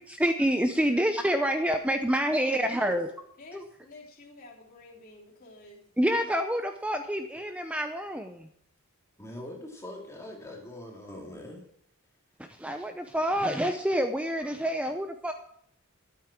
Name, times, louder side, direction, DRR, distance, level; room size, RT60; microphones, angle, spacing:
voice 1, 0.1-3.1 3.5-3.6 6.0-8.5 12.5-15.3, equal, 5° right, 6 dB, 0.6 m, -27 dB
voice 2, 2.4-2.9 3.4-6.2, left 2 dB, 40° left, -3 dB, 3.3 m, -50 dB
voice 3, 9.2-11.6, left 1 dB, 15° left, -1 dB, 2.5 m, -42 dB
12.5 x 8.6 x 6.0 m, 0.67 s
head